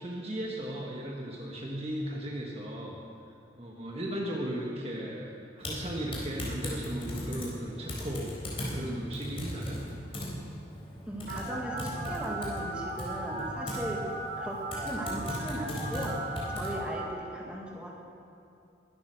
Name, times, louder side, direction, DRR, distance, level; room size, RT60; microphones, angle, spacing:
voice 1, 0.0-3.0 3.6-9.8, right 1 dB, 30° right, -2 dB, 1.5 m, -36 dB
Typing, 5.6-16.8, left 1 dB, 30° left, 3.8 m, -38 dB
voice 2, 11.1-14.0 14.4-16.2 16.5-17.9, equal, 5° right, -3 dB, 2.1 m, -38 dB
Telephone, 11.3-17.0, right 2 dB, 50° right, 3.4 m, -37 dB
21.5 x 9.3 x 6.4 m, 2.5 s
head